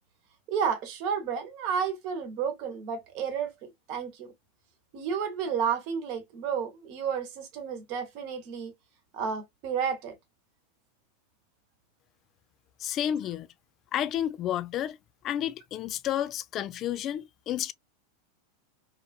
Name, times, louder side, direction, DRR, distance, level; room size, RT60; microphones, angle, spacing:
voice 1, 0.5-3.5 3.9-4.3 4.9-8.7 9.1-10.2, right 7 dB, 55° right, 1.1 m, -31 dB
voice 2, 12.8-13.5 13.9-15.0 15.2-17.7, left 11 dB, 40° left, 0.3 m, -31 dB
2.9 x 2.5 x 2.3 m
hypercardioid pair, 95°, 0 cm